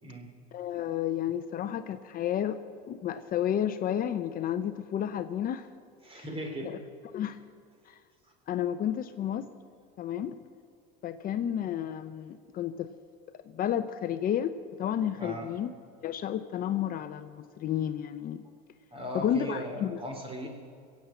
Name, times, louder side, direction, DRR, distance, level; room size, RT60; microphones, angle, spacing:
voice 1, 0.5-2.6 2.9-5.7 6.1-6.2 6.6-6.8 7.1-7.4 7.9-8.0 8.5-9.5 10.0-10.4 11.0-12.9 13.5-14.5 14.8-15.7 16.0-18.4 19.1-20.0, left 10 dB, 45° left, 10 dB, 0.7 m, -31 dB
voice 2, 6.0-6.8 15.2-15.5 18.9-20.5, equal, 25° right, 3 dB, 3.5 m, -38 dB
21.5 x 8.5 x 7.7 m, 2.2 s
supercardioid pair, 115°, 21 cm